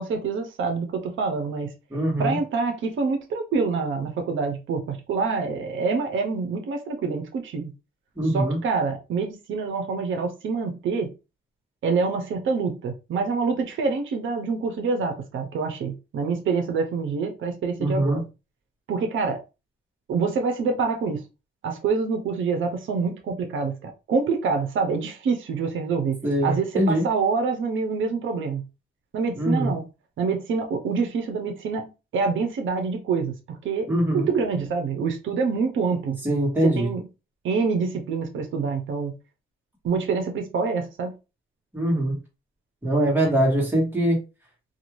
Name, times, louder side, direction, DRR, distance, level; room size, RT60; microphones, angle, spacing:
voice 1, 0.0-1.7 2.2-7.7 8.2-11.1 11.8-18.2 18.9-19.4 20.1-21.2 21.6-28.6 29.1-29.8 30.2-36.2 36.6-37.0 37.4-39.2 39.8-41.1, right 4 dB, 75° right, 0.7 m, -26 dB
voice 2, 1.9-2.4 8.2-8.6 17.8-18.2 26.2-27.1 29.3-29.7 33.9-34.3 36.2-36.9 41.7-42.2 42.8-44.2, right 1 dB, 10° right, 1.3 m, -22 dB
2.6 x 2.3 x 3.0 m
cardioid pair, 135°, 20 cm